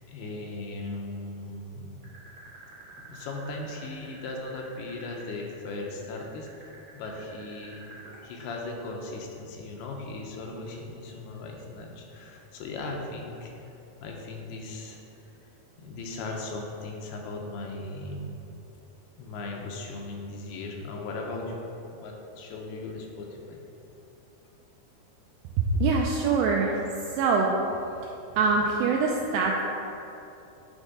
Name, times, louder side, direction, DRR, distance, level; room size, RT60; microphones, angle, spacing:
voice 1, 0.1-1.9 3.0-7.8 8.2-13.5 14.0-15.0 15.8-18.3 19.1-23.6, left 2 dB, 80° left, 0 dB, 2.8 m, -38 dB
sound 1, 2.0-8.2, right 3 dB, 60° right, 2.2 m, -48 dB
voice 2, 25.6-26.8 27.1-27.5 28.3-29.6, right 4 dB, 85° right, -1 dB, 2.1 m, -24 dB
9.2 x 3.6 x 5.3 m, 2.9 s
omnidirectional pair, 4.6 m